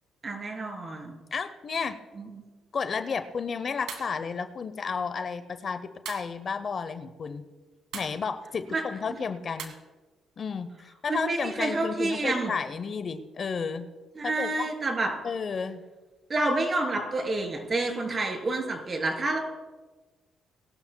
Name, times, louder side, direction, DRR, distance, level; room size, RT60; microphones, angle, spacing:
voice 1, 0.2-1.2 2.2-2.4 8.7-8.8 11.1-12.5 14.2-15.1 16.3-19.4, right 2 dB, 40° right, 2 dB, 3.3 m, -29 dB
voice 2, 1.3-2.0 2.7-7.4 7.9-9.7 10.4-13.9 14.2-14.7 15.2-15.8, left 5 dB, 50° left, 11 dB, 0.7 m, -32 dB
sound 1, 3.9-4.1 6.0-6.3 7.9-8.2 9.6-9.7, right 7 dB, 80° right, 1.5 m, -38 dB
21.0 x 12.0 x 2.3 m, 1.3 s
supercardioid pair, 70°, 0 cm